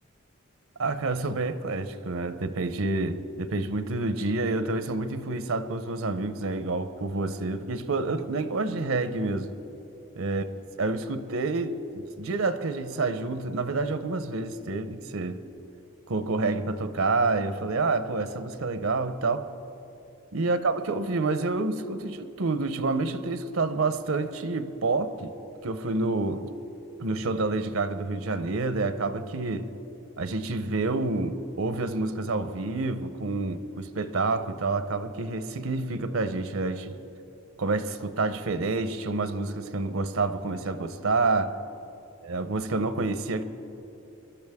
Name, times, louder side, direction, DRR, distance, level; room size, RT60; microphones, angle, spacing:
voice 1, 0.8-9.5 10.2-10.5 10.8-15.4 16.1-19.5 20.3-25.3 25.6-26.5 27.0-29.7 30.2-37.0 37.6-41.6 42.2-43.4, right 3 dB, 80° right, 0.7 m, -28 dB
23.0 x 13.0 x 3.6 m
head